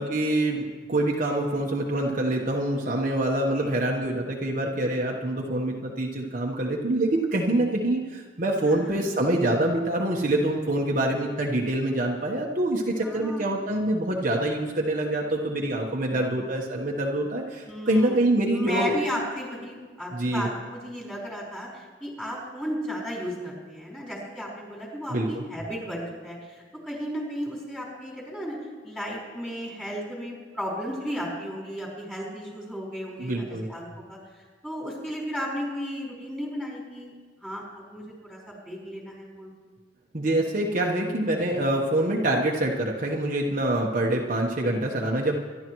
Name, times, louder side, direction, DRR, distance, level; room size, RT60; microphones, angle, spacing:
voice 1, 0.0-19.0 20.1-20.5 25.1-25.4 33.2-33.7 40.1-45.4, right 1 dB, 45° right, -1 dB, 1.2 m, -25 dB
voice 2, 8.6-9.0 13.0-13.6 17.7-18.2 18.5-28.6 28.8-34.2 34.6-37.1 37.4-39.5, equal, 5° left, -5 dB, 4.7 m, -34 dB
25.5 x 12.0 x 3.1 m, 1.5 s
head